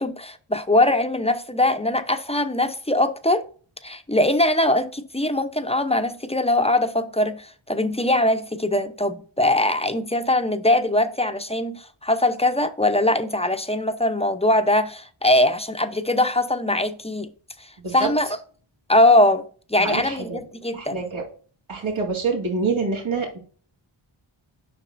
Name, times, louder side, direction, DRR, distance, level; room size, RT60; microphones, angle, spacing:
voice 1, 0.0-3.4 3.8-17.3 17.9-18.3 18.9-19.4 19.7-21.0, left 1 dB, 15° left, 0.6 m, -21 dB
voice 2, 19.8-20.4 20.7-21.2 21.7-23.4, right 4 dB, 75° right, 2.1 m, -26 dB
7.5 x 5.9 x 2.6 m
wide cardioid pair, 60°, 49 cm